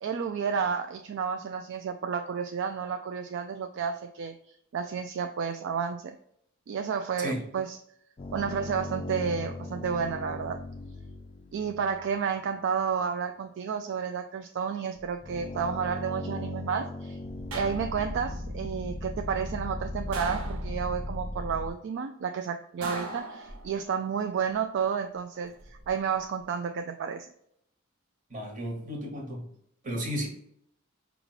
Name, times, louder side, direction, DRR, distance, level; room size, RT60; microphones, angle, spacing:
voice 1, 0.0-4.4 4.7-6.2 6.7-7.8 8.3-10.6 11.5-17.2 17.5-27.3, right 6 dB, 55° right, 6 dB, 0.3 m, -31 dB
sound 1, 8.2-12.3 15.0-21.7, left 2 dB, 25° left, 0.3 m, -37 dB
sound 2, 17.5-18.3 20.1-21.1 22.8-24.0 25.3-25.9, right 2 dB, 85° right, 0.8 m, -39 dB
voice 2, 28.3-29.5 29.8-30.3, equal, 40° right, 0 dB, 1.3 m, -33 dB
5.0 x 2.4 x 3.1 m, 0.72 s
head